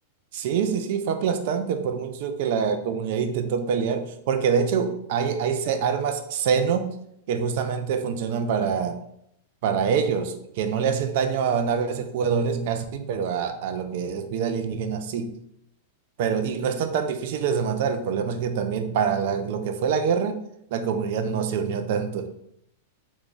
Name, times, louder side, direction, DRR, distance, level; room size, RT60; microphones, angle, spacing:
voice 1, 0.3-7.0 7.3-9.0 9.6-15.3 16.2-20.4 20.7-22.3, right 6 dB, 60° right, 0.4 m, -25 dB
3.0 x 2.5 x 3.6 m
supercardioid pair, 145°, 0 cm